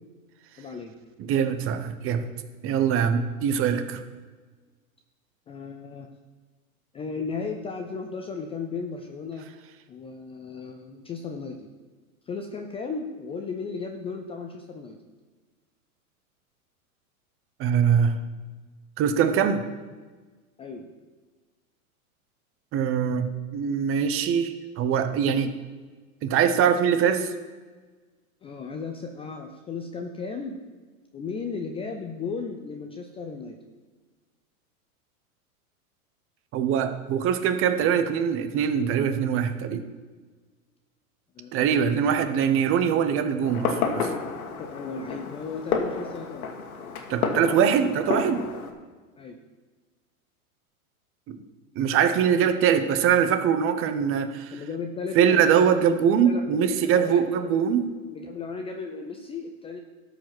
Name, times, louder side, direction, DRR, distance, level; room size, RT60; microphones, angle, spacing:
voice 1, 0.6-0.9 5.5-6.1 6.9-9.5 9.9-11.7 12.3-15.0 20.6-20.9 25.2-25.5 28.4-30.6 31.1-33.6 37.9-38.0 41.3-42.3 43.2-43.5 44.6-46.5 49.2-49.4 52.4-52.5 54.5-57.8 58.1-59.8, left 4 dB, 15° left, 4 dB, 0.5 m, -35 dB
voice 2, 1.3-2.2 2.6-4.0 17.6-18.2 19.0-19.6 22.7-25.5 26.2-27.3 36.5-39.8 41.5-44.1 47.1-48.4 51.3-51.4 51.7-54.5 55.1-57.9, right 8 dB, 30° right, 9 dB, 0.9 m, -23 dB
Fireworks, 43.4-48.7, left 5 dB, 75° left, 1.7 m, -30 dB
12.5 x 5.0 x 6.0 m, 1.4 s
hypercardioid pair, 120°, 43 cm